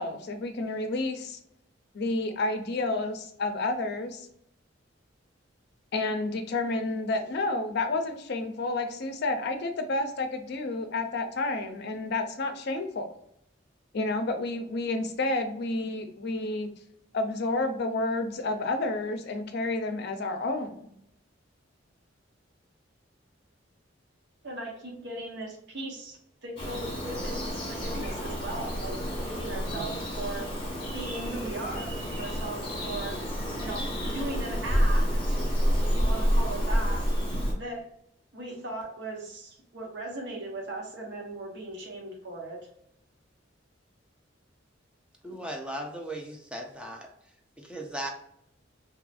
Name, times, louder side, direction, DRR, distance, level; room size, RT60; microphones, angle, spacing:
voice 1, 0.0-1.4 1.9-4.3 5.9-13.1 13.9-16.7 17.1-20.9, left 2 dB, 60° left, 6 dB, 0.5 m, -30 dB
voice 2, 24.4-30.5 30.9-33.2 33.6-35.4 35.8-37.1 37.6-37.9 38.3-42.7, right 2 dB, 65° right, 0 dB, 0.8 m, -38 dB
Bird vocalization bird call bird song, 26.6-37.5, equal, 30° left, 1.3 m, -29 dB
voice 3, 45.2-47.1 47.6-48.1, right 1 dB, 5° right, 1 dB, 0.5 m, -37 dB
2.8 x 2.5 x 2.3 m, 0.72 s
head